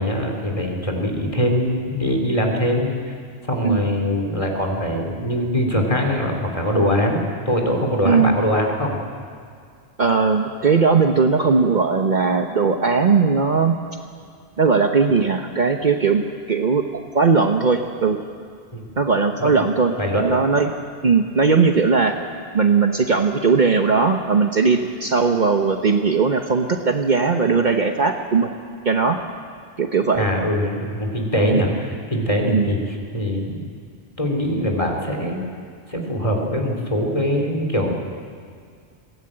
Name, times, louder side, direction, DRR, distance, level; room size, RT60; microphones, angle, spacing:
voice 1, 0.0-3.1 3.4-9.0 18.7-18.8 19.4-19.5 20.0-20.3 30.1-33.7 34.2-35.5 35.9-37.9, equal, 30° left, 1 dB, 3.4 m, -22 dB
voice 2, 8.0-8.4 10.0-13.8 14.6-16.2 16.5-18.2 19.0-19.9 20.2-20.7 21.0-22.2 22.5-28.5 28.8-29.2 29.8-30.3 31.5-31.6 32.5-32.7, right 5 dB, 50° right, 4 dB, 1.1 m, -18 dB
22.0 x 17.0 x 8.8 m, 2.2 s
omnidirectional pair, 1.1 m